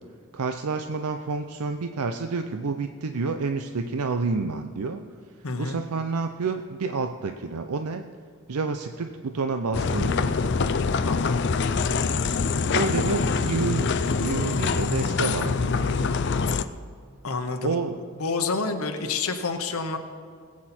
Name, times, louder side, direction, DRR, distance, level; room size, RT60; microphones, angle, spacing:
voice 1, 0.3-5.0 5.6-8.1 8.5-10.6 12.6-13.9 14.2-16.1 17.6-18.0, right 4 dB, 85° right, 7 dB, 0.6 m, -29 dB
voice 2, 5.4-5.8 11.0-11.4 17.2-17.8 18.2-20.0, left 4 dB, 75° left, 5 dB, 1.0 m, -28 dB
sound 1, 9.7-16.6, left 4 dB, 50° left, 0.4 m, -24 dB
20.0 x 8.5 x 4.3 m, 2.1 s
head